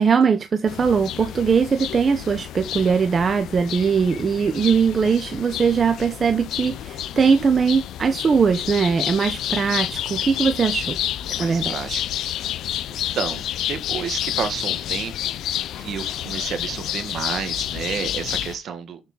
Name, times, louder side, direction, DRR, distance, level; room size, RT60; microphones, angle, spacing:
voice 1, 0.0-11.0 11.4-11.7, right 6 dB, 40° right, 1.0 m, -20 dB
sound 1, 0.7-18.6, left 12 dB, 80° left, 0.6 m, -29 dB
voice 2, 11.3-12.4 12.9-15.4 15.7-19.0, right 7 dB, 65° right, 1.9 m, -31 dB
7.3 x 6.5 x 4.0 m
cardioid pair, 90°, 0 cm